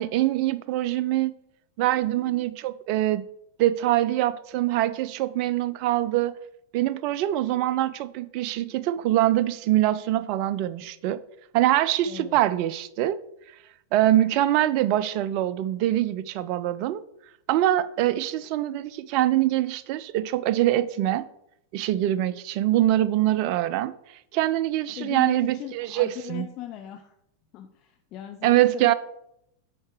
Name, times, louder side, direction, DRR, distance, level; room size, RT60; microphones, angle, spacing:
voice 1, 0.0-1.3 1.8-3.2 3.6-6.3 6.7-11.2 11.5-13.2 13.9-17.0 17.5-21.2 21.7-23.9 24.3-26.5 28.4-28.9, right 14 dB, 45° right, 0.4 m, -24 dB
voice 2, 12.0-12.4 25.0-27.1 27.5-28.9, left 13 dB, 40° left, 0.5 m, -38 dB
7.2 x 4.7 x 4.6 m
figure-of-eight pair, 90°, 0 cm